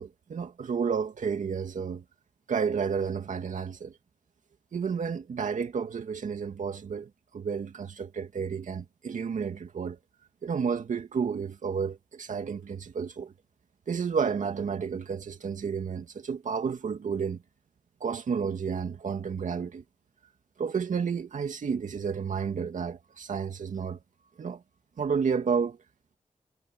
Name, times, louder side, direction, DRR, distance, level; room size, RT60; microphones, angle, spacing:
voice 1, 0.0-2.0 2.5-3.9 4.7-10.0 10.4-13.3 13.9-17.4 18.0-19.8 20.6-24.0 24.4-24.6 25.0-25.8, right 6 dB, 70° right, 2.6 m, -31 dB
wide cardioid pair, 145°, 13 cm